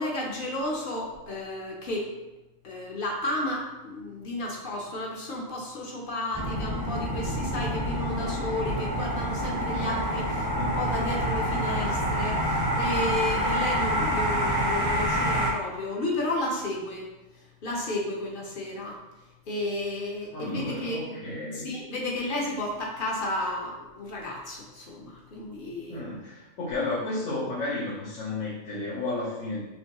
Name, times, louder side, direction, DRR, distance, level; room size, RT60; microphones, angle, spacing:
voice 1, 0.0-2.1 2.6-17.1 17.6-19.0 19.5-21.2 21.5-26.0, left 1 dB, 50° left, -2 dB, 0.8 m, -32 dB
sound 1, 6.3-15.5, equal, 25° right, 0.6 m, -27 dB
voice 2, 20.3-21.7 25.9-29.6, left 2 dB, 75° left, -8 dB, 1.2 m, -32 dB
4.5 x 3.0 x 2.9 m, 1.0 s
omnidirectional pair, 1.4 m